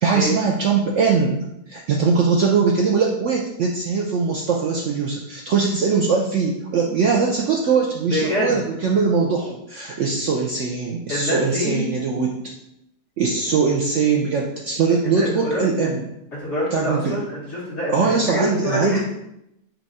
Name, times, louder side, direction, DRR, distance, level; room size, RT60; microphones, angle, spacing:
voice 1, 0.0-12.4 13.2-16.0 16.7-17.2 17.9-19.0, right 5 dB, 70° right, 0 dB, 0.7 m, -21 dB
voice 2, 8.1-8.6 11.1-11.9 15.0-15.6 16.3-19.0, left 1 dB, 45° left, -8 dB, 1.9 m, -25 dB
5.5 x 2.3 x 4.1 m, 0.81 s
omnidirectional pair, 1.8 m